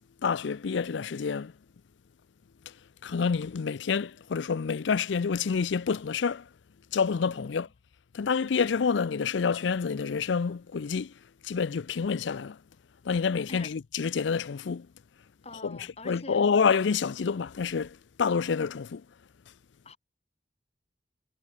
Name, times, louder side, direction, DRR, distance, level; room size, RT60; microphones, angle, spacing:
voice 1, 0.2-1.5 2.7-2.8 3.0-6.5 6.9-7.7 8.1-11.1 11.4-12.6 13.0-14.9 15.6-19.0, left 5 dB, 70° left, 0.5 m, -28 dB
voice 2, 7.3-7.6 13.5-13.7 15.4-16.5 19.8-20.0, left 2 dB, 35° left, 5.8 m, -45 dB
head